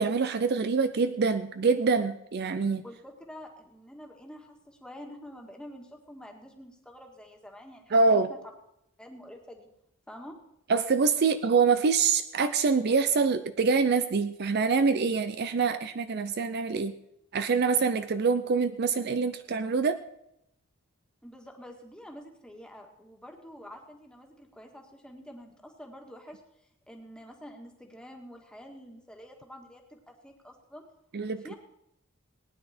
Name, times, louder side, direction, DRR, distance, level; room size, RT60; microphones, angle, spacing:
voice 1, 0.0-2.8 7.9-8.3 10.7-17.0 17.3-20.0 31.1-31.5, right 4 dB, 50° right, 11 dB, 0.5 m, -25 dB
voice 2, 2.8-8.2 9.0-9.7 10.1-10.4 21.2-26.4 26.9-30.8 31.3-31.6, equal, 5° left, 1 dB, 1.7 m, -47 dB
19.0 x 9.9 x 4.3 m, 0.80 s
head